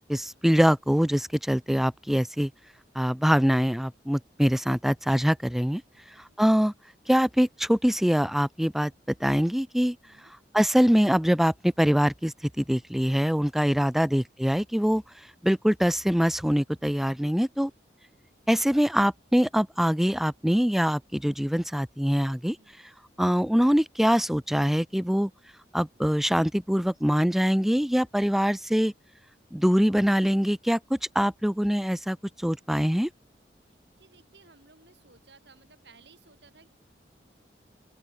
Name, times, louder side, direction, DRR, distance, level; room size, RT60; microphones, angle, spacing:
voice 1, 0.1-2.5 3.0-5.8 6.2-6.7 7.1-8.9 9.2-10.0 10.5-17.7 18.5-22.6 23.2-25.3 25.7-28.9 29.5-33.1, equal, ahead, 0.4 m, -24 dB
voice 2, 5.9-6.4 10.0-10.3 22.6-22.8 33.7-36.7, right 3 dB, 75° right, 6.6 m, -58 dB
open air
head